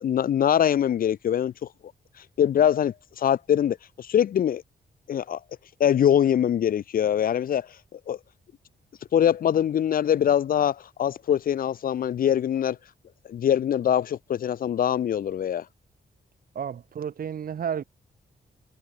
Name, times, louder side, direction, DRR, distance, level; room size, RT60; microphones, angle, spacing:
voice 1, 0.0-1.7 2.4-4.6 5.1-5.4 5.8-8.2 9.1-12.8 13.3-15.7, left 9 dB, 55° left, 0.6 m, -23 dB
voice 2, 16.5-17.8, right 8 dB, 55° right, 4.0 m, -31 dB
wide cardioid pair, 170°, 18 cm